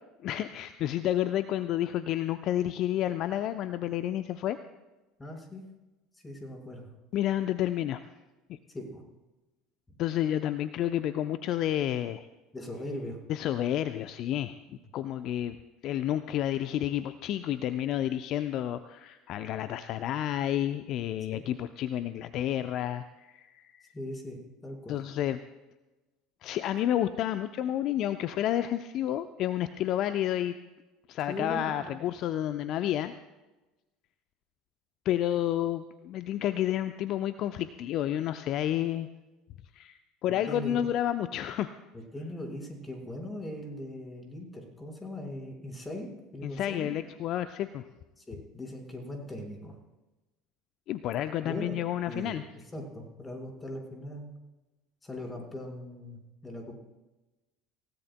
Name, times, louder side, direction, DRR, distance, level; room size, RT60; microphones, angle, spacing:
voice 1, 0.2-4.6 7.1-8.0 8.5-8.6 10.0-12.3 13.3-14.5 14.9-15.6 15.8-23.9 24.9-25.4 26.4-30.6 31.1-33.1 35.0-39.1 39.7-41.7 46.4-47.8 50.9-52.4, left 12 dB, 50° left, 11 dB, 0.6 m, -30 dB
voice 2, 5.2-5.6 6.2-6.9 8.7-9.0 12.5-13.2 14.7-14.8 21.3-21.4 23.9-25.0 31.3-31.9 40.5-40.8 41.9-46.9 48.2-49.8 51.4-51.8 52.1-52.4 52.7-54.3 55.0-56.8, left 1 dB, 15° left, 2 dB, 5.1 m, -40 dB
27.0 x 17.0 x 2.2 m, 1.1 s
figure-of-eight pair, 65°, 0 cm